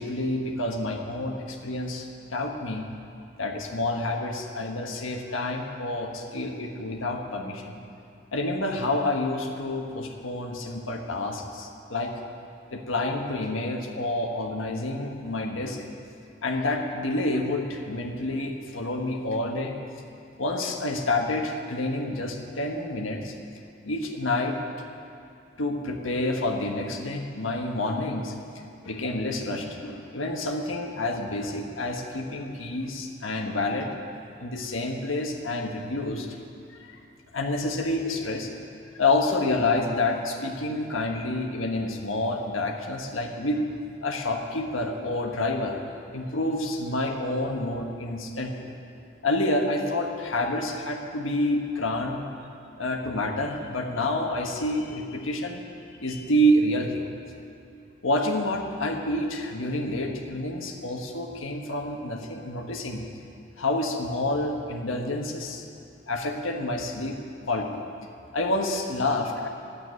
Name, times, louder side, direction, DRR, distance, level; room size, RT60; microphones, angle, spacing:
voice 1, 0.0-2.9 3.4-7.7 8.3-12.1 12.7-15.8 16.4-19.7 20.4-23.3 23.8-24.5 25.6-28.3 28.8-33.9 34.4-36.3 36.9-37.0 37.3-38.5 39.0-43.6 44.0-45.8 46.1-48.7 49.2-52.2 52.8-55.6 56.0-57.1 58.0-63.1 63.6-65.6 66.1-67.1 67.5-67.9 68.3-69.5, left 1 dB, 90° left, 2 dB, 1.5 m, -28 dB
12.5 x 8.5 x 9.5 m, 2.5 s
head